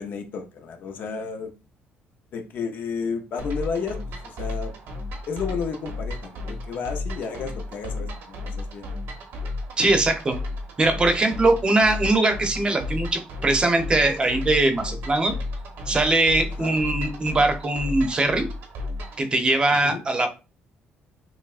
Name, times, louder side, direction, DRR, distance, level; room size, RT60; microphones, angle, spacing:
voice 1, 0.0-1.5 2.3-4.0 4.2-4.7 5.3-8.9 16.6-16.8 19.8-20.0, left 5 dB, 65° left, 0.7 m, -32 dB
sound 1, 3.4-19.2, left 2 dB, 75° right, 1.0 m, -33 dB
voice 2, 9.8-10.4 10.8-15.3 15.9-18.5 19.2-20.3, right 2 dB, 25° right, 0.7 m, -21 dB
5.8 x 2.0 x 2.4 m
cardioid pair, 110°, 4 cm